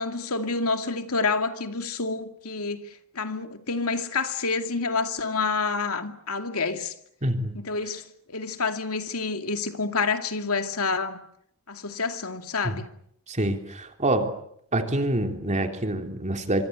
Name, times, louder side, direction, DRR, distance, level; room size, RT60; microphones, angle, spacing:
voice 1, 0.0-6.9 7.6-11.2 11.7-12.9, left 4 dB, 75° left, 2.5 m, -28 dB
voice 2, 7.2-7.6 12.6-12.8 13.3-14.3 14.7-16.6, right 1 dB, 35° right, 3.5 m, -26 dB
25.5 x 25.5 x 8.1 m
head